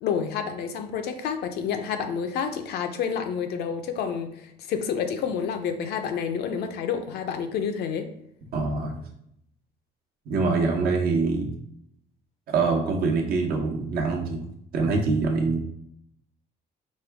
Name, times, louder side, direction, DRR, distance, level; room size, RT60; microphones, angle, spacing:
voice 1, 0.0-8.1, left 7 dB, 70° left, 6 dB, 0.6 m, -29 dB
voice 2, 8.5-8.9 10.3-11.5 12.5-14.4 14.7-15.6, right 4 dB, 65° right, 1 dB, 1.0 m, -24 dB
5.2 x 2.3 x 3.4 m, 0.72 s
cardioid pair, 110°, 17 cm